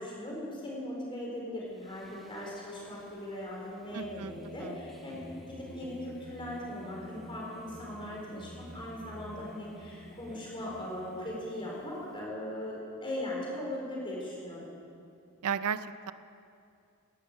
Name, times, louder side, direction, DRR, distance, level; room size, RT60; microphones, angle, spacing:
voice 1, 0.0-5.2 5.5-14.7, left 1 dB, 25° left, -4 dB, 4.3 m, -39 dB
Singing, 1.7-12.2, equal, ahead, 1.6 m, -50 dB
voice 2, 3.9-4.3 4.6-4.8 15.4-16.1, right 7 dB, 90° right, 14 dB, 0.5 m, -34 dB
17.5 x 11.0 x 6.6 m, 2.5 s
head